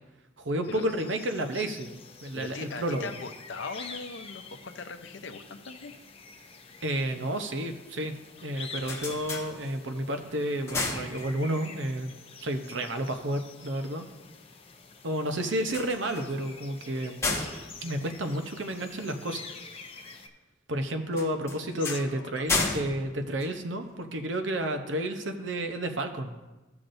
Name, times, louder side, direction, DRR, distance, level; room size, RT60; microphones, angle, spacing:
voice 1, 0.4-1.9 2.2-3.1 6.8-8.1 8.4-12.2 12.4-14.1 15.0-17.2 17.8-19.4 20.7-26.5, right 1 dB, 70° right, 6 dB, 0.8 m, -31 dB
sound 1, 0.6-20.3, left 4 dB, 30° left, 0.6 m, -47 dB
voice 2, 2.3-5.9 21.8-22.4, left 4 dB, 70° left, 7 dB, 0.7 m, -40 dB
sound 2, 8.6-10.1 10.4-11.8 15.5-19.0 21.1-24.2, left 3 dB, 15° left, 1.1 m, -34 dB
14.5 x 5.9 x 2.6 m, 1.1 s
head